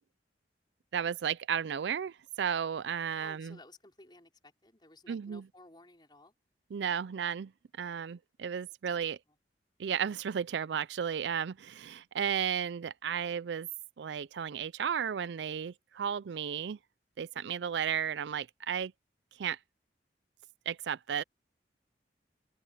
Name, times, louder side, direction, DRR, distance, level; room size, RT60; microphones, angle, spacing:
voice 1, 0.9-3.6 5.1-5.4 6.7-7.5 7.8-9.2 9.8-13.7 14.0-16.8 17.2-18.9 19.4-19.6 20.7-21.2, right 8 dB, 80° right, 0.4 m, -34 dB
voice 2, 3.2-6.3 9.0-9.2, left 2 dB, 25° left, 5.3 m, -56 dB
open air
head